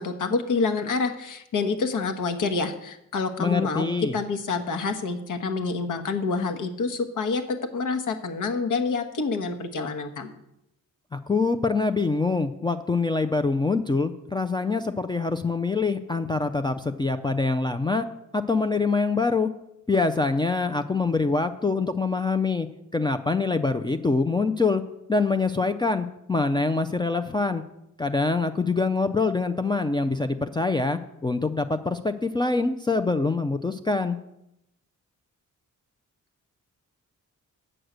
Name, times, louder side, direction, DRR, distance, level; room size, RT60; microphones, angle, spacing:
voice 1, 0.0-3.9 4.1-10.4, left 4 dB, 75° left, 7 dB, 1.3 m, -27 dB
voice 2, 3.4-4.2 11.1-18.1 18.3-19.5 19.9-22.7 22.9-24.8 25.1-27.6 28.0-34.2, left 3 dB, 15° left, 5 dB, 0.3 m, -25 dB
8.8 x 6.3 x 7.9 m, 0.84 s
wide cardioid pair, 175°, 32 cm